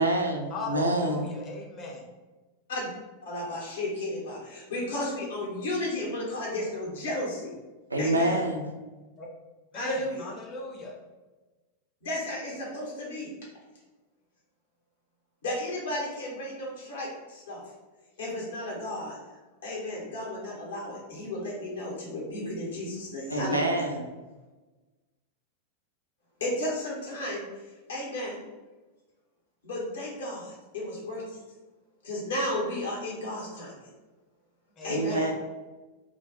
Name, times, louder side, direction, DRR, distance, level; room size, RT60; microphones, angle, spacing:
voice 1, 0.0-1.3 7.9-8.7 23.3-24.0 34.9-35.3, right 1 dB, 80° right, 1 dB, 0.4 m, -26 dB
voice 2, 0.5-2.0 9.2-9.3 9.7-10.9 23.5-23.6 34.8-35.2, left 3 dB, 30° left, -1 dB, 0.6 m, -39 dB
voice 3, 3.2-7.5 8.0-8.4 9.7-10.3 12.0-13.3 15.4-17.6 18.2-19.2 19.6-23.7 26.4-27.4 27.9-28.4 29.6-31.4 32.0-33.9 34.8-35.3, left 1 dB, 65° left, -3 dB, 0.9 m, -33 dB
2.3 x 2.0 x 2.7 m, 1.2 s
figure-of-eight pair, 90°, 0 cm